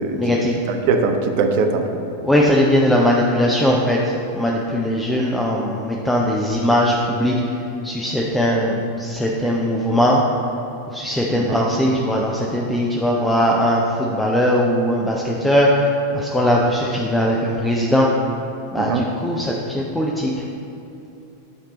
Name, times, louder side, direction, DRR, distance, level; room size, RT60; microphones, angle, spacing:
voice 1, 0.1-0.6 2.2-7.4 7.8-10.2 10.9-18.2 18.7-20.3, equal, 5° left, -3 dB, 0.5 m, -19 dB
voice 2, 0.7-2.0 11.3-11.6 18.8-19.0, right 4 dB, 50° right, 5 dB, 0.6 m, -21 dB
8.9 x 3.3 x 3.9 m, 2.9 s
figure-of-eight pair, 90°, 0 cm